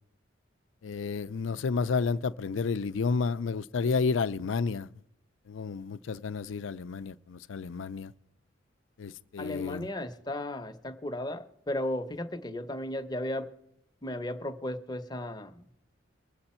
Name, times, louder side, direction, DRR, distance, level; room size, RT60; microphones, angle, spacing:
voice 1, 0.8-4.9 5.5-8.1 9.0-9.9, left 4 dB, 80° left, 0.5 m, -31 dB
voice 2, 9.4-13.5 14.0-15.7, left 1 dB, 20° left, 0.7 m, -35 dB
23.0 x 7.9 x 4.3 m
head